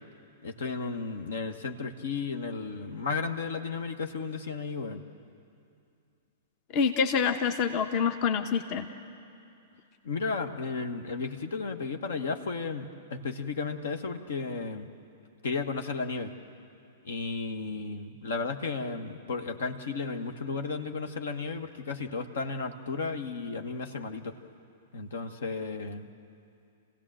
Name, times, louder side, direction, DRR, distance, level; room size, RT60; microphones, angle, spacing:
voice 1, 0.4-5.0 10.0-14.9 15.4-16.3 17.0-24.4 24.9-26.1, left 4 dB, 65° left, 7 dB, 1.2 m, -34 dB
voice 2, 6.7-8.9, left 6 dB, 40° left, 7 dB, 1.1 m, -26 dB
28.0 x 16.5 x 7.6 m, 2.6 s
figure-of-eight pair, 105°, 0 cm